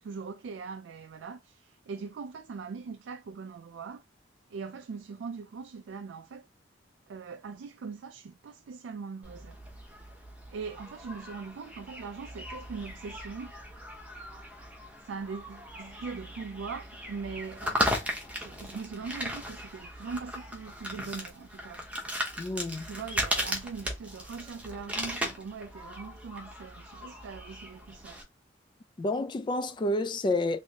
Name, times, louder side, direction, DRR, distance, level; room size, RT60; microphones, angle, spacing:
voice 1, 0.0-4.0 4.5-6.5 7.1-9.6 10.5-13.5 15.0-17.8 18.4-21.8 22.8-28.2, right 5 dB, 80° right, 0.3 m, -41 dB
sound 1, 9.2-28.2, equal, 10° right, 0.7 m, -37 dB
voice 2, 22.4-22.9 29.0-30.6, left 2 dB, 25° left, 0.3 m, -29 dB
3.3 x 2.8 x 2.7 m
head